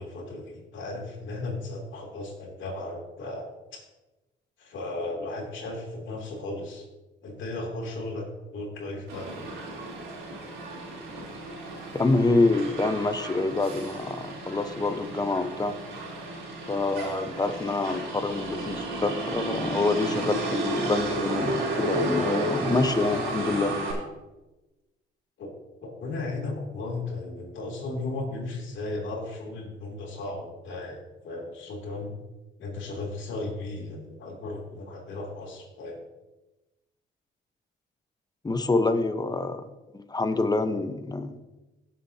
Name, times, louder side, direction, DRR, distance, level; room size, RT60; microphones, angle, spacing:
voice 1, 0.0-3.8 4.6-6.9 7.2-9.4 25.4-25.5 25.8-32.1 32.6-36.0, left 2 dB, 75° left, 0 dB, 2.9 m, -35 dB
Motor vehicle (road), 9.1-23.9, right 1 dB, 90° right, 3.5 m, -32 dB
voice 2, 11.9-15.8 16.7-23.8 38.4-39.6 39.9-41.4, left 3 dB, 20° left, 9 dB, 1.0 m, -26 dB
17.5 x 7.3 x 2.9 m, 1.1 s
cardioid pair, 90°, 20 cm